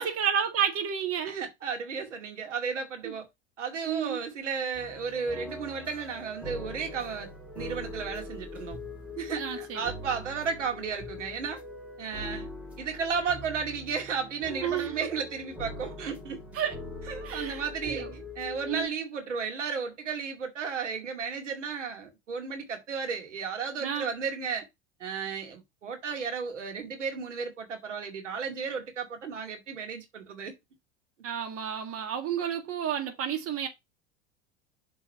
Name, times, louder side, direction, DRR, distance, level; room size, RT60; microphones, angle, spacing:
voice 1, 0.0-1.3 3.0-3.1 3.8-4.2 9.4-9.8 14.6-15.1 16.5-16.8 17.2-18.1 18.7-18.9 23.8-24.1 31.2-33.7, right 8 dB, 40° right, 2.0 m, -31 dB
voice 2, 1.2-3.3 3.6-7.3 7.5-8.8 9.2-11.6 12.0-12.5 12.8-16.4 17.1-18.0 18.4-24.7 25.0-30.5, right 6 dB, 85° right, 2.2 m, -34 dB
sound 1, 4.7-18.9, left 2 dB, 5° right, 3.5 m, -42 dB
7.2 x 4.0 x 5.6 m
hypercardioid pair, 85°, 35 cm